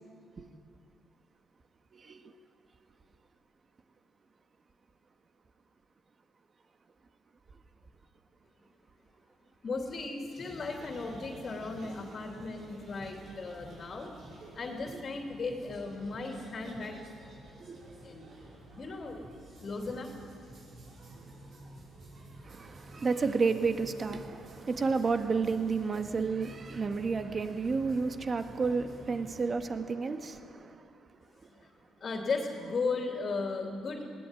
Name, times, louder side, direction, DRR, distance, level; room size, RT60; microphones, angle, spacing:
voice 1, 1.9-2.3 14.9-15.0 17.6-17.8 22.4-30.8, right 4 dB, 40° right, 7 dB, 1.7 m, -31 dB
voice 2, 9.6-14.1 14.5-17.0 18.0-18.3 18.7-19.2 19.6-20.1 31.6-31.7 32.0-34.2, left 3 dB, 45° left, 2 dB, 3.0 m, -36 dB
sound 1, 10.2-29.5, right 2 dB, 60° right, 6.2 m, -51 dB
20.0 x 17.0 x 9.9 m, 2.4 s
cardioid pair, 90°, 0 cm